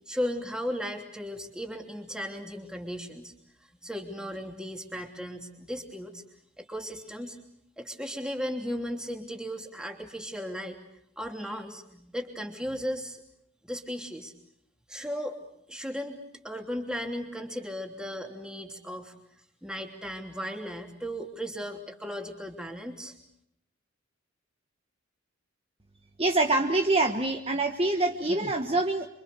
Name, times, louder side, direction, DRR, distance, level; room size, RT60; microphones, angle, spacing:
voice 1, 0.1-3.3 3.8-6.2 6.6-7.4 7.8-10.8 11.2-13.2 13.6-14.3 14.9-15.4 15.7-16.2 16.4-19.1 19.6-23.1, equal, 5° right, 3 dB, 3.1 m, -36 dB
voice 2, 26.2-29.1, right 2 dB, 25° right, 4 dB, 1.3 m, -25 dB
28.0 x 25.0 x 6.8 m, 0.75 s
head